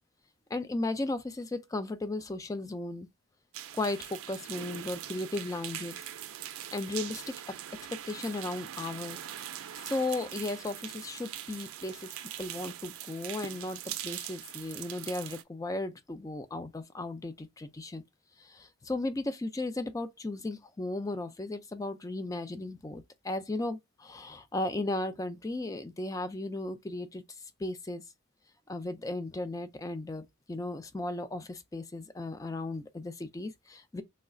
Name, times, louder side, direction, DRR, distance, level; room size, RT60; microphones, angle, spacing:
voice 1, 0.5-3.1 3.7-6.1 6.7-7.6 7.9-9.2 9.8-12.1 12.4-18.0 18.4-28.0 28.7-34.0, left 2 dB, 15° left, 0.3 m, -36 dB
sound 1, 3.5-15.4, right 11 dB, 85° right, 0.4 m, -42 dB
3.2 x 2.3 x 3.7 m
head